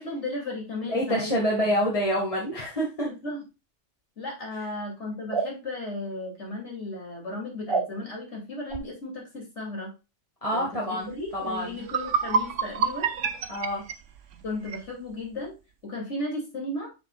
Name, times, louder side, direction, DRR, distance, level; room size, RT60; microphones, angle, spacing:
voice 1, 0.0-1.9 3.0-3.4 4.2-9.9 10.5-10.6 10.9-13.1 14.4-15.5 15.8-16.9, left 2 dB, 70° left, -1 dB, 3.2 m, -35 dB
voice 2, 0.8-3.1 10.4-11.9 13.5-13.8, equal, 30° left, -3 dB, 2.0 m, -27 dB
sound 1, 5.3-5.5 7.7-7.9 8.7-8.8, right 4 dB, 50° right, 0.3 m, -27 dB
sound 2, 11.3-11.4 11.8-14.9, right 6 dB, 80° right, 1.1 m, -28 dB
6.8 x 6.7 x 2.4 m, 0.27 s
omnidirectional pair, 1.2 m